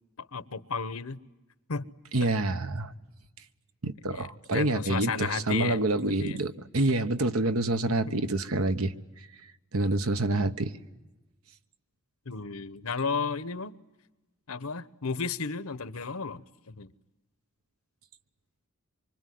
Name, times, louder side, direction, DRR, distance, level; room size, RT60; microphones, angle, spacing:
voice 1, 0.2-1.2 1.7-1.8 2.2-2.3 4.1-5.8 6.2-6.4 8.0-8.2 12.3-13.8 14.5-16.9, left 5 dB, 80° left, 1.0 m, -33 dB
voice 2, 2.1-2.9 3.8-8.9 9.7-10.7, right 2 dB, 80° right, 1.2 m, -27 dB
25.5 x 24.5 x 9.4 m
head